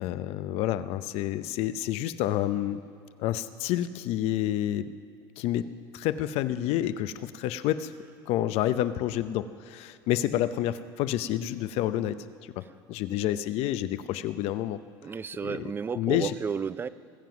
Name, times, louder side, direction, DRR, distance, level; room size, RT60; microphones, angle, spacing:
voice 1, 0.0-2.8 3.2-4.9 5.4-5.6 5.9-7.9 8.3-12.2 12.9-14.8 15.4-15.5 15.9-16.3, left 12 dB, 55° left, 13 dB, 0.7 m, -29 dB
voice 2, 15.0-16.9, right 6 dB, 20° right, 17 dB, 0.4 m, -32 dB
20.5 x 7.6 x 5.9 m, 2.4 s
supercardioid pair, 110°, 12 cm